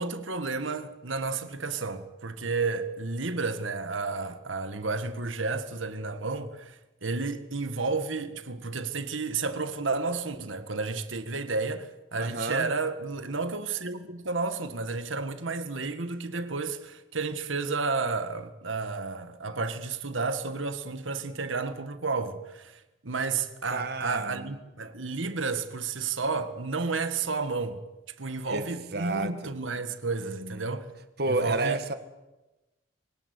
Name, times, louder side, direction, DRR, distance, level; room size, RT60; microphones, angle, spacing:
voice 1, 0.0-27.8 28.2-30.9 31.3-31.8, right 4 dB, 90° right, 1.8 m, -31 dB
voice 2, 12.2-12.7 23.7-24.5 28.5-29.5 30.2-30.7 31.2-31.9, right 2 dB, 55° right, 1.9 m, -31 dB
25.0 x 18.5 x 8.4 m
head